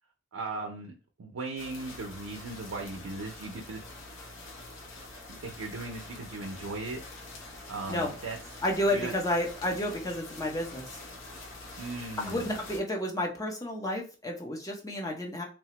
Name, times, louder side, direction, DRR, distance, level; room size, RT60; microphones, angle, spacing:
voice 1, 0.3-0.9 1.2-3.8 5.3-7.0 7.7-8.6 8.9-9.1 11.8-12.5, right 3 dB, 80° right, 2 dB, 0.5 m, -38 dB
sound 1, 1.6-12.8, left 2 dB, 65° left, 0.7 m, -45 dB
voice 2, 8.6-11.0 12.3-15.4, left 1 dB, 15° left, 0 dB, 0.6 m, -31 dB
3.2 x 2.0 x 2.9 m, 0.34 s
head